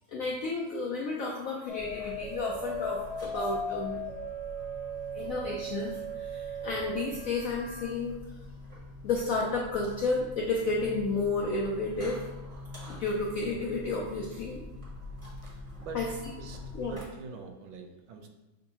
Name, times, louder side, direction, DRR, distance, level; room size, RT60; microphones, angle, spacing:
voice 1, 0.1-4.0 5.1-8.2 9.0-12.3 12.9-14.6 15.9-16.1 16.7-17.0, left 3 dB, 85° left, -2 dB, 0.7 m, -32 dB
sound 1, 1.7-7.8, right 1 dB, 35° right, 1.0 m, -37 dB
sound 2, 1.8-17.0, left 2 dB, 20° right, 1.4 m, -45 dB
voice 2, 15.4-16.1 16.4-18.3, right 5 dB, 80° right, 4 dB, 1.4 m, -45 dB
6.9 x 2.6 x 2.8 m, 1.0 s
omnidirectional pair, 2.1 m